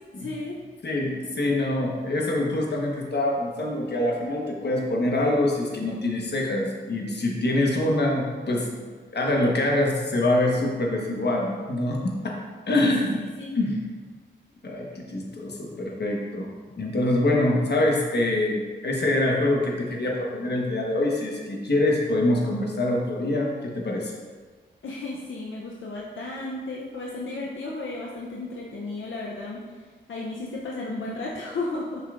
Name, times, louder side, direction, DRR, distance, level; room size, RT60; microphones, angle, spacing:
voice 1, 0.2-0.6 12.8-13.1 13.4-13.6 24.8-29.6 30.1-32.0, left 2 dB, 85° left, -3 dB, 0.7 m, -33 dB
voice 2, 0.8-8.9 9.1-12.4 12.7-13.2 13.5-13.8 14.6-16.5 16.8-24.1, left 1 dB, 60° left, -1 dB, 1.2 m, -25 dB
7.7 x 5.6 x 2.5 m, 1.5 s
cardioid pair, 55°, 19 cm